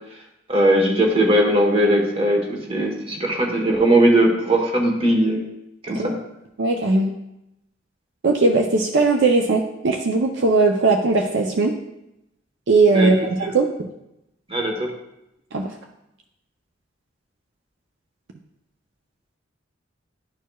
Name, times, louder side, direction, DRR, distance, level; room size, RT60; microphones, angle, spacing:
voice 1, 0.5-5.4 5.8-6.1 12.9-13.1 14.5-14.9, right 1 dB, 30° right, 0 dB, 1.2 m, -19 dB
voice 2, 6.6-7.1 8.2-11.7 12.7-13.9 15.5-15.7, right 3 dB, 65° right, 2 dB, 0.5 m, -19 dB
11.0 x 4.6 x 2.3 m, 0.87 s
head